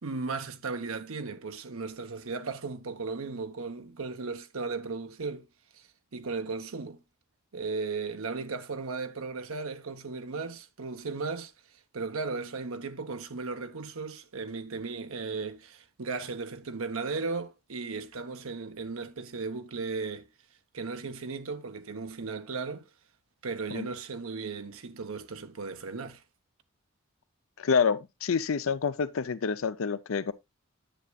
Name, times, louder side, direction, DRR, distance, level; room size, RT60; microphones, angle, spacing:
voice 1, 0.0-5.5 5.7-7.0 7.5-11.5 11.9-20.3 20.7-22.9 23.4-26.2, right 4 dB, 75° right, 0.8 m, -36 dB
voice 2, 27.6-30.3, left 6 dB, 70° left, 0.5 m, -28 dB
10.0 x 8.0 x 2.3 m
head